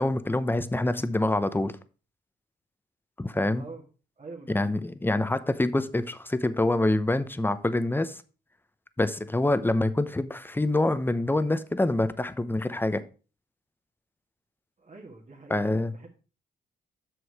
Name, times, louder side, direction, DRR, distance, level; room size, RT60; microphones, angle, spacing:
voice 1, 0.0-1.7 3.2-3.6 4.5-8.2 9.0-13.0 15.5-16.1, left 2 dB, 10° left, 13 dB, 0.8 m, -26 dB
voice 2, 3.5-3.9 4.2-4.8 14.8-16.1, right 3 dB, 40° right, -1 dB, 2.1 m, -45 dB
7.9 x 6.3 x 4.8 m, 0.36 s
cardioid pair, 75°, 19 cm